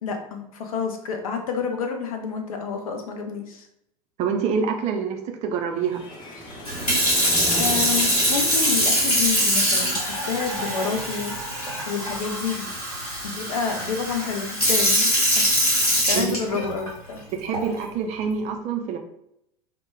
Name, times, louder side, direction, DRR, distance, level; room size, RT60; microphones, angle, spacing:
voice 1, 0.0-3.7 7.6-12.7 13.2-15.4 16.0-17.2, left 5 dB, 70° left, 4 dB, 0.5 m, -29 dB
voice 2, 4.2-6.0 16.1-16.6 17.4-19.0, right 6 dB, 35° right, 4 dB, 0.4 m, -26 dB
sound 1, 5.8-10.1, left 1 dB, 25° left, 0.7 m, -36 dB
Sink (filling or washing) / Fill (with liquid), 6.6-16.9 17.5-17.8, equal, 85° left, 1.1 m, -23 dB
2.1 x 2.0 x 3.2 m, 0.79 s
figure-of-eight pair, 75°, 19 cm